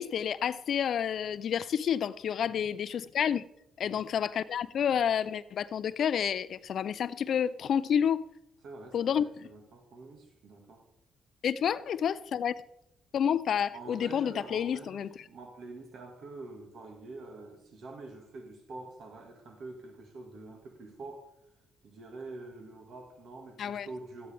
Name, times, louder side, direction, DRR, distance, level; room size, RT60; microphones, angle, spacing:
voice 1, 0.0-3.4 3.8-8.2 8.9-9.5 11.4-12.5 13.1-15.1 23.6-23.9, left 8 dB, 60° left, 0.4 m, -29 dB
voice 2, 2.4-2.8 3.8-4.1 8.6-10.8 13.7-21.3 21.8-24.3, right 3 dB, 65° right, 1.8 m, -46 dB
13.0 x 9.4 x 3.4 m
cardioid pair, 90°, 0 cm